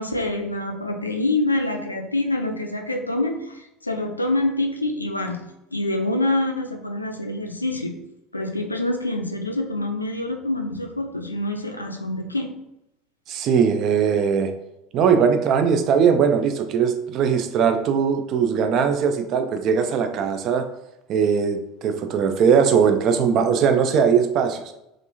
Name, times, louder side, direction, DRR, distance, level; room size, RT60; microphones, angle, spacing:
voice 1, 0.0-5.4 5.7-8.0 8.3-12.5, left 2 dB, 85° left, 4 dB, 0.3 m, -26 dB
voice 2, 13.3-14.5 14.9-20.7 21.1-24.6, right 6 dB, 45° right, 7 dB, 0.3 m, -20 dB
3.3 x 2.5 x 2.7 m, 0.88 s
figure-of-eight pair, 70°, 0 cm